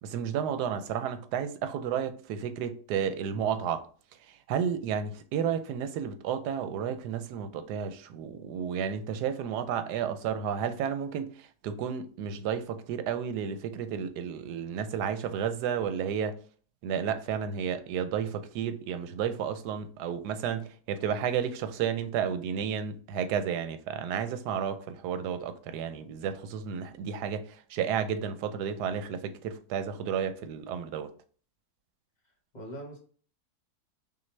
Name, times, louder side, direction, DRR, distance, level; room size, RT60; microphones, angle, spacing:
voice 1, 0.0-3.8 4.2-16.4 16.8-31.1, right 8 dB, 90° right, 1.2 m, -32 dB
voice 2, 32.2-33.0, equal, 35° left, 0.8 m, -43 dB
5.8 x 2.4 x 3.2 m
omnidirectional pair, 1.7 m